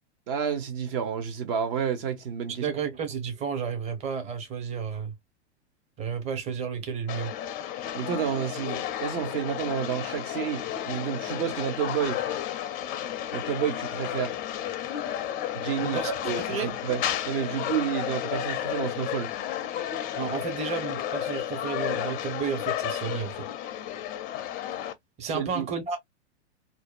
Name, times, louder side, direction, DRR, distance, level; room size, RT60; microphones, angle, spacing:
voice 1, 0.3-2.7 7.9-12.2 13.3-14.4 15.5-19.3 25.3-25.7, right 8 dB, 55° right, 0.9 m, -30 dB
voice 2, 2.6-5.1 6.0-7.3 15.8-16.7 20.2-23.5 25.2-26.0, right 6 dB, 20° right, 0.7 m, -32 dB
sound 1, 7.1-24.9, left 11 dB, 25° left, 0.4 m, -32 dB
2.7 x 2.2 x 2.3 m
hypercardioid pair, 115°, 35 cm